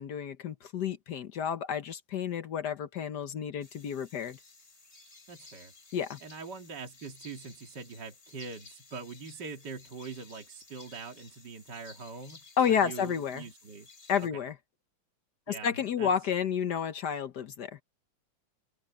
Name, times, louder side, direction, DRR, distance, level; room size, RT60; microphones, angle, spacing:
voice 1, 0.0-4.4 5.9-6.2 12.6-13.5 14.1-14.5 15.5-17.8, left 8 dB, 65° left, 1.5 m, -31 dB
sound 1, 3.6-14.3, left 3 dB, 35° left, 3.5 m, -55 dB
voice 2, 5.3-5.7 6.2-12.4 12.7-13.9 14.2-14.4 15.5-16.1, right 4 dB, 60° right, 2.8 m, -43 dB
omnidirectional pair, 2.1 m